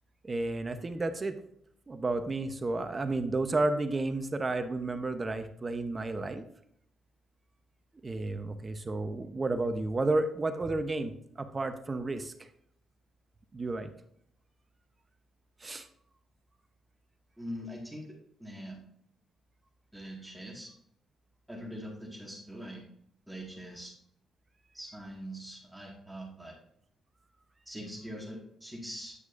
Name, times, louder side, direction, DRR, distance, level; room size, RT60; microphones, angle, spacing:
voice 1, 0.2-1.4 1.9-6.5 8.0-12.3 13.5-13.9 15.6-15.9, right 2 dB, 25° right, 8 dB, 0.8 m, -32 dB
voice 2, 17.4-18.1 18.4-18.8 19.9-20.7 21.5-22.8 23.3-23.9 24.7-26.6 27.7-29.2, equal, 5° right, -2 dB, 1.9 m, -42 dB
9.4 x 6.1 x 2.6 m, 0.70 s
cardioid pair, 90°, 0 cm